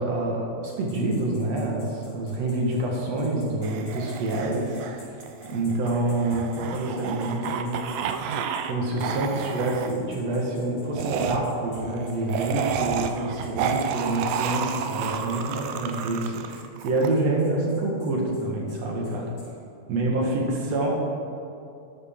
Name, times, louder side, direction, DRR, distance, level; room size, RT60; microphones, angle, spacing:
voice 1, 0.0-8.3 8.6-19.3 19.9-20.9, right 2 dB, 55° right, -1 dB, 2.2 m, -27 dB
sound 1, 0.6-8.7 9.0-9.1 9.4-19.5, left 3 dB, 75° left, 4.5 m, -52 dB
sound 2, 3.6-8.7 9.0-9.9 10.9-17.1, right 7 dB, 80° right, 2.0 m, -31 dB
13.0 x 11.5 x 3.7 m, 2.7 s
omnidirectional pair, 4.3 m